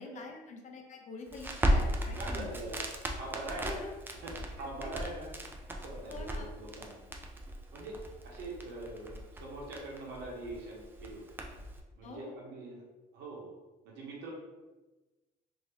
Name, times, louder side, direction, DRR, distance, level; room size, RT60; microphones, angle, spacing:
voice 1, 0.0-2.5 3.5-3.9 4.6-4.9 6.1-6.5 12.0-12.3, left 4 dB, 45° left, 3 dB, 0.6 m, -46 dB
Crackle, 1.3-11.8, equal, 10° right, 0.4 m, -36 dB
voice 2, 2.1-2.8 3.2-3.8 4.2-5.3 5.7-7.0 7.7-8.0 8.2-11.4 11.9-12.8 13.1-13.5 13.8-14.3, right 2 dB, 80° right, -3 dB, 1.0 m, -43 dB
2.9 x 2.8 x 3.1 m, 1.1 s
cardioid pair, 110°, 17 cm